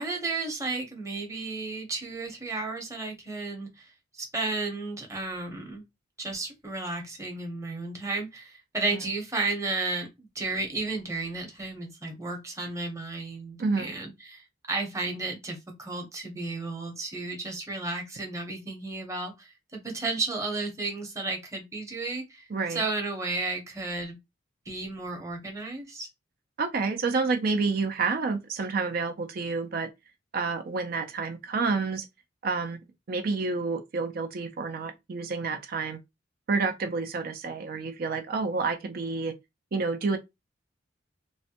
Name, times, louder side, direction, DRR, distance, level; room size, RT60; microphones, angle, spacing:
voice 1, 0.0-5.8 6.2-24.2 24.7-26.1, right 3 dB, 15° right, 0.8 m, -33 dB
voice 2, 13.6-13.9 22.5-22.8 26.6-29.9 30.3-32.1 32.4-32.8 33.1-36.0 36.5-39.3 39.7-40.2, right 4 dB, 50° right, 0.4 m, -29 dB
3.1 x 2.1 x 2.8 m
head